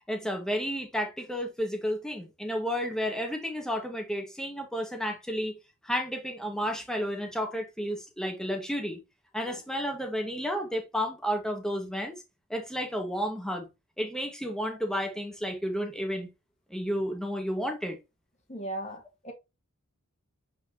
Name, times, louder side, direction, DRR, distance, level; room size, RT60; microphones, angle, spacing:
voice 1, 0.1-5.5 5.8-9.0 9.3-12.2 12.5-13.7 14.0-16.3 16.7-18.0, equal, 5° left, 1.9 m, -32 dB
voice 2, 18.5-19.3, right 1 dB, 30° left, 1.8 m, -37 dB
8.8 x 4.5 x 3.0 m
head